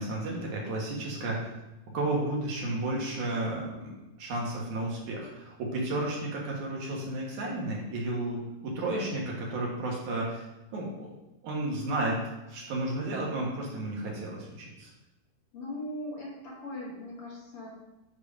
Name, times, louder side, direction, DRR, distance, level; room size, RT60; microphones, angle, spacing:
voice 1, 0.0-1.4 1.9-3.9 4.2-10.4 10.7-11.1 11.4-12.2 12.5-14.9, right 2 dB, 60° right, -2 dB, 2.5 m, -32 dB
voice 2, 15.5-17.7, left 1 dB, 50° left, -5 dB, 1.8 m, -39 dB
7.0 x 4.7 x 5.0 m, 0.99 s
omnidirectional pair, 4.5 m